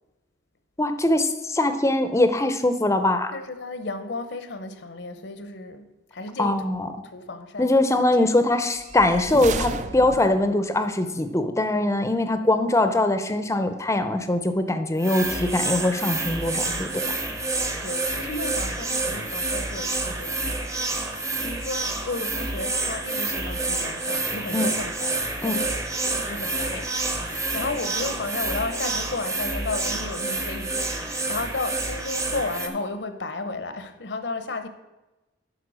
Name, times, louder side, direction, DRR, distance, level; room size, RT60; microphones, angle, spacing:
voice 1, 0.8-3.3 6.4-6.9 7.6-17.0 24.5-24.7 25.4-25.6, left 2 dB, 15° left, 9 dB, 0.6 m, -22 dB
voice 2, 3.3-7.8 8.2-8.3 17.8-20.6 21.4-25.8 26.0-34.7, left 3 dB, 70° left, 10 dB, 0.8 m, -33 dB
sound 1, 8.8-10.6, right 4 dB, 40° right, 0.5 m, -33 dB
sound 2, 15.0-32.7, right 2 dB, 15° right, 0.8 m, -28 dB
11.0 x 4.4 x 6.2 m, 1.0 s
head